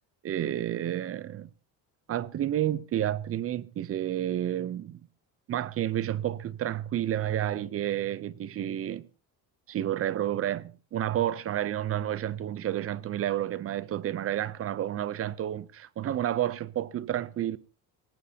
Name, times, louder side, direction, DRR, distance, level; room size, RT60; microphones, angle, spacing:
voice 1, 0.2-1.5 2.1-5.0 5.5-9.1 9.7-17.6, right 11 dB, 35° right, 0.6 m, -30 dB
19.5 x 18.5 x 2.8 m
cardioid pair, 150°, 39 cm